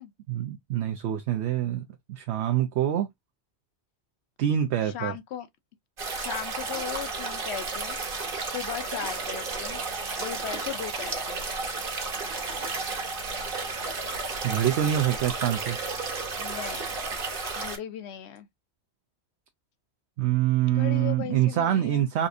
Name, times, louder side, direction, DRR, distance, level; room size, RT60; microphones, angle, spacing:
voice 1, 0.3-1.8 2.1-3.1 4.4-5.1 14.4-15.8 20.2-22.3, right 11 dB, 75° right, 0.8 m, -25 dB
voice 2, 4.8-5.5 6.2-8.0 8.4-9.8 10.2-11.5 16.4-17.0 17.6-18.5 20.7-22.1, left 10 dB, 75° left, 0.8 m, -37 dB
sound 1, 6.0-17.8, right 3 dB, 55° right, 1.2 m, -32 dB
4.1 x 2.5 x 2.5 m
omnidirectional pair, 1.1 m